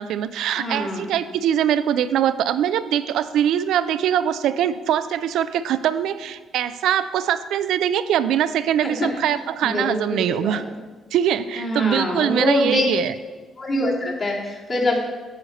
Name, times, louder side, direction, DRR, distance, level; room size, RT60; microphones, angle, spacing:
voice 1, 0.0-10.6 11.1-13.1, right 10 dB, 80° right, 13 dB, 0.4 m, -22 dB
voice 2, 0.6-1.1 8.8-9.2 9.6-10.6 11.6-12.8 13.6-15.0, left 1 dB, 45° left, -4 dB, 2.6 m, -24 dB
9.2 x 4.2 x 6.5 m, 1.4 s
cardioid pair, 90°, 0 cm